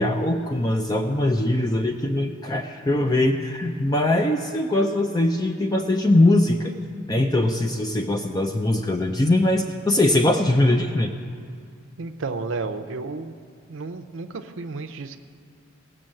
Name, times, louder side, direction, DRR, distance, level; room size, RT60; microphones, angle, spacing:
voice 1, 0.0-6.7 7.1-11.1, left 1 dB, 20° left, 5 dB, 0.5 m, -21 dB
voice 2, 12.0-13.3 13.7-15.2, right 3 dB, 75° right, 7 dB, 0.6 m, -32 dB
17.0 x 6.2 x 7.6 m, 2.2 s
head